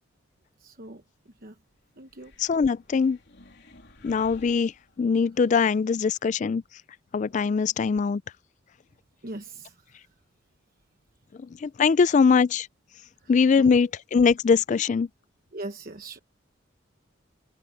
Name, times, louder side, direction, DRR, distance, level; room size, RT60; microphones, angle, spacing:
voice 1, 0.6-1.0 1.4-1.5 2.0-2.3 9.2-9.8 13.6-13.7 15.5-16.2, right 2 dB, 45° right, 1.1 m, -39 dB
sound 1, 2.1-5.4, left 2 dB, 60° left, 3.3 m, -53 dB
voice 2, 2.4-3.2 4.0-6.6 7.1-8.2 11.4-12.7 13.3-15.1, left 5 dB, 40° left, 0.3 m, -22 dB
head